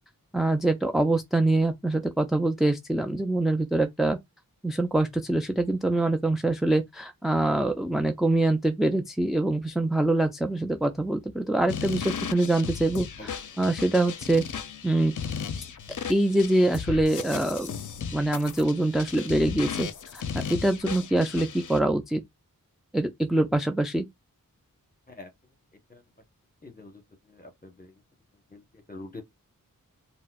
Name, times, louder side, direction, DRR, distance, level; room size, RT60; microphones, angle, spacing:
voice 1, 0.3-4.2 4.6-14.4 14.8-15.1 16.1-17.7 18.1-20.2 20.5-22.2 22.9-24.1, right 2 dB, ahead, 0.3 m, -24 dB
sound 1, 11.7-21.8, left 7 dB, 60° left, 0.5 m, -36 dB
voice 2, 26.6-27.0 27.3-27.9 28.5-28.6 28.9-29.2, left 2 dB, 25° left, 1.0 m, -44 dB
4.1 x 2.0 x 2.3 m
wide cardioid pair, 60°, 35 cm